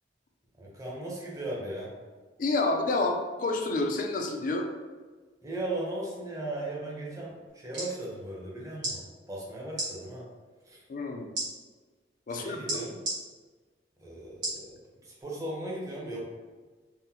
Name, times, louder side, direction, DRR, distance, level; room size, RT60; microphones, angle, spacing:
voice 1, 0.6-1.9 5.4-10.2 10.6-10.8 12.3-13.0 14.0-16.3, right 1 dB, 15° right, -4 dB, 0.6 m, -37 dB
voice 2, 2.4-4.7 10.9-11.3 12.3-12.6, left 2 dB, 45° left, 3 dB, 0.3 m, -29 dB
sound 1, 7.5-7.9 8.8-9.0 9.7-9.9 11.3-11.5 12.7-13.2 14.4-14.6 15.2-15.3, right 1 dB, 70° right, 1.5 m, -32 dB
3.7 x 2.1 x 2.8 m, 1.4 s
head